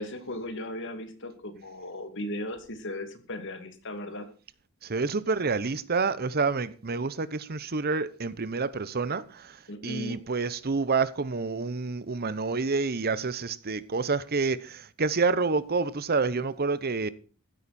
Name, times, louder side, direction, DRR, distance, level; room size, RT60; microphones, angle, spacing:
voice 1, 0.0-4.3 9.7-10.2, left 1 dB, 60° left, 2.5 m, -37 dB
voice 2, 4.8-17.1, right 4 dB, 45° right, 0.9 m, -28 dB
15.0 x 13.0 x 4.3 m
head